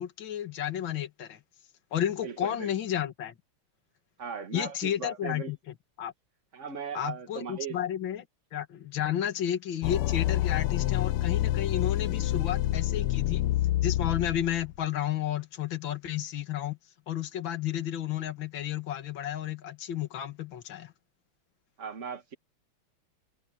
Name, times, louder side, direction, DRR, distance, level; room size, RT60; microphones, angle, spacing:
voice 1, 0.0-1.4 1.9-3.3 4.5-6.1 6.9-8.3 8.5-13.4 13.8-16.8 17.1-20.9, left 11 dB, 60° left, 2.5 m, -32 dB
voice 2, 2.2-2.7 4.2-5.5 6.5-7.8 21.8-22.3, right 6 dB, 35° right, 1.9 m, -38 dB
sound 1, 9.8-14.8, left 14 dB, 85° left, 1.6 m, -27 dB
omnidirectional pair, 2.4 m